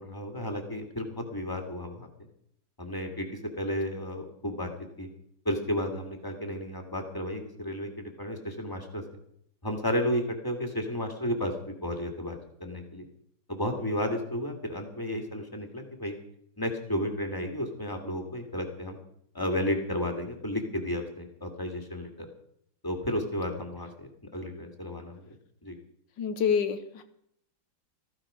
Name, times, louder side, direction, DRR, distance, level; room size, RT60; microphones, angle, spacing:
voice 1, 0.0-2.1 2.8-3.3 3.6-4.7 5.0-5.1 5.5-9.0 9.6-11.5 11.8-13.1 13.5-16.1 16.6-19.0 19.3-22.3 22.8-25.3 25.6-25.8, left 1 dB, 10° left, 4 dB, 2.0 m, -32 dB
voice 2, 26.2-27.0, left 7 dB, 70° left, 10 dB, 1.7 m, -27 dB
15.0 x 14.5 x 5.0 m, 0.70 s
omnidirectional pair, 2.2 m